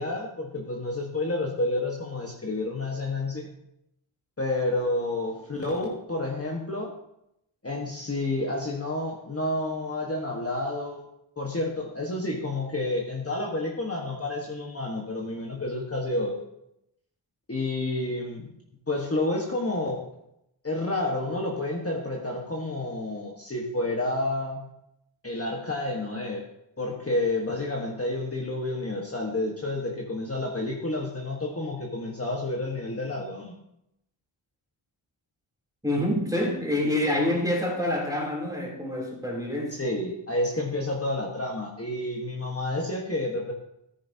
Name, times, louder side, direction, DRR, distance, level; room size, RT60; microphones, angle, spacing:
voice 1, 0.0-3.5 4.4-6.9 7.6-11.0 11.4-16.4 17.5-18.5 18.9-20.0 20.6-24.7 25.2-26.5 26.8-33.6 39.7-43.5, left 2 dB, 30° left, -1 dB, 1.4 m, -30 dB
voice 2, 35.8-39.8, left 1 dB, 5° right, -3 dB, 3.1 m, -27 dB
13.5 x 9.6 x 2.8 m, 0.80 s
wide cardioid pair, 85°, 48 cm